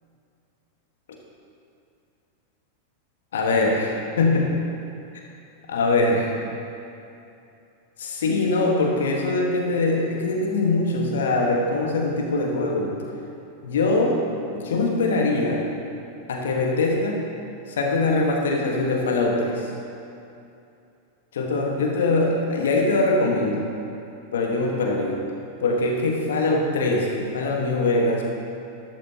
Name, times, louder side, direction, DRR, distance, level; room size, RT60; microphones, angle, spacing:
voice 1, 3.3-4.5 5.7-6.3 8.0-12.9 13.6-15.6 16.3-17.2 17.7-19.7 21.3-23.7 24.3-25.2 25.6-28.2, left 2 dB, 60° left, 0 dB, 1.7 m, -22 dB
13.5 x 12.5 x 3.0 m, 2.7 s
figure-of-eight pair, 90°, 0 cm